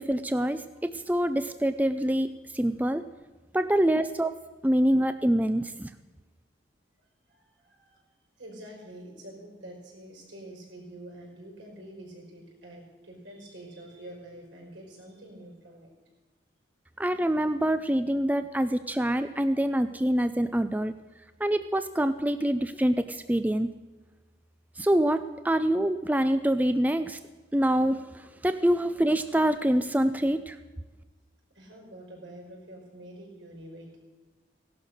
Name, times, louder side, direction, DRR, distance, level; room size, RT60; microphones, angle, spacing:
voice 1, 0.0-3.0 3.5-4.3 4.6-5.9 17.0-20.9 21.4-23.7 24.8-27.2 27.5-30.6, right 1 dB, 10° right, 10 dB, 0.4 m, -25 dB
voice 2, 7.3-8.1 8.4-15.9 31.5-34.0, right 1 dB, 85° right, 0 dB, 5.3 m, -46 dB
17.0 x 11.5 x 6.5 m, 1.2 s
head